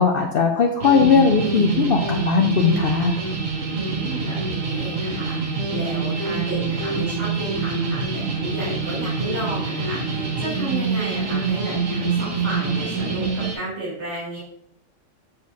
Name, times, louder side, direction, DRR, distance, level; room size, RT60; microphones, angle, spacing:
voice 1, 0.0-3.2, left 6 dB, 60° left, 3 dB, 0.6 m, -18 dB
sound 1, 0.8-13.5, right 4 dB, 80° right, 1.5 m, -25 dB
voice 2, 3.7-14.4, right 1 dB, 60° right, -6 dB, 2.5 m, -32 dB
6.3 x 6.2 x 2.8 m, 0.75 s
omnidirectional pair, 1.3 m